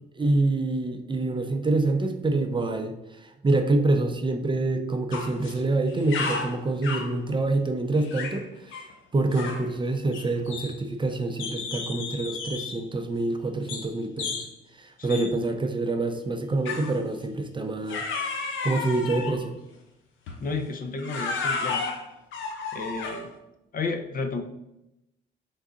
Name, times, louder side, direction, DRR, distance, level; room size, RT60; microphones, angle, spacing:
voice 1, 0.2-8.8 9.1-14.5 14.7-18.0 18.6-19.6, right 2 dB, 25° right, 6 dB, 0.5 m, -26 dB
sound 1, 5.1-5.6 5.9-7.2 8.0-8.4 8.7-8.9 9.3-9.7 10.1-11.0 11.4-12.8 13.7-13.9 14.2-14.5 15.1-15.3 16.6-17.0 17.9-19.4 20.3-20.5 21.0-23.3, left 4 dB, 75° left, 0.8 m, -33 dB
voice 2, 15.0-15.3 20.4-21.9 22.7-23.3 23.7-24.4, left 4 dB, 45° left, 6 dB, 0.7 m, -32 dB
3.9 x 3.6 x 3.7 m, 0.88 s
cardioid pair, 90°, 20 cm